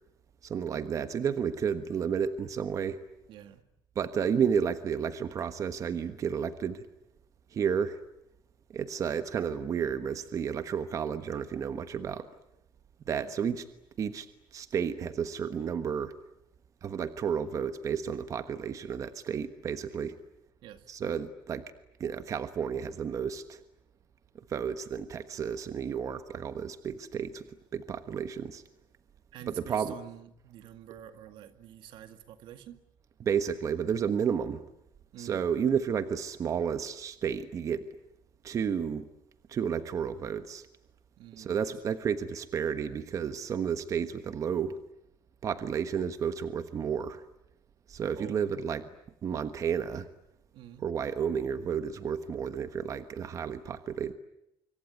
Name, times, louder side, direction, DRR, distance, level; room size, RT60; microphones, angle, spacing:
voice 1, 0.4-3.0 3.9-6.8 7.5-8.0 8.7-12.3 13.1-13.6 14.0-14.3 14.5-16.1 16.8-20.1 20.9-21.6 22.0-23.6 24.5-27.5 27.7-28.6 29.5-29.9 33.2-34.6 35.2-37.9 38.4-39.1 39.5-40.7 41.4-44.8 45.4-47.2 47.9-48.8 49.2-50.1 50.8-54.1, right 7 dB, 40° right, 11 dB, 1.3 m, -31 dB
voice 2, 3.3-3.6 13.0-13.4 20.6-20.9 29.3-32.8 35.1-35.5 41.2-41.7 48.1-48.4 50.5-50.9, right 11 dB, 85° right, 9 dB, 2.1 m, -48 dB
26.0 x 24.5 x 9.5 m, 0.81 s
cardioid pair, 155°, 8 cm